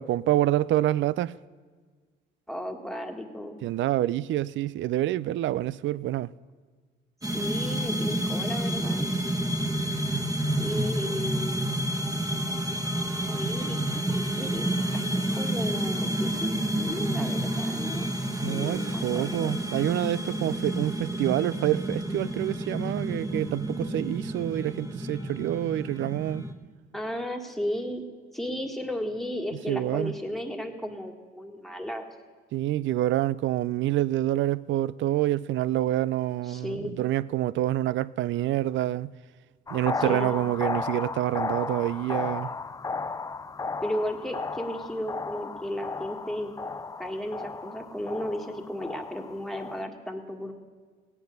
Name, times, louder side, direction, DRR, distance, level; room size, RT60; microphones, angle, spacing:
voice 1, 0.0-1.3 3.6-6.3 18.4-26.4 29.7-30.1 32.5-39.1 39.7-42.5, right 13 dB, 70° right, 0.4 m, -27 dB
voice 2, 2.5-3.6 7.3-9.1 10.6-11.7 13.2-13.8 14.1-14.6 14.9-16.5 16.8-18.1 18.5-19.6 26.9-28.0 28.3-32.1 36.5-37.0 40.1-40.4 43.8-46.5 47.0-50.5, equal, ahead, 1.7 m, -34 dB
sound 1, 7.2-26.5, right 1 dB, 15° right, 1.6 m, -29 dB
sound 2, 39.7-49.8, left 4 dB, 15° left, 0.4 m, -34 dB
17.0 x 9.1 x 6.6 m
cardioid pair, 90°, 20 cm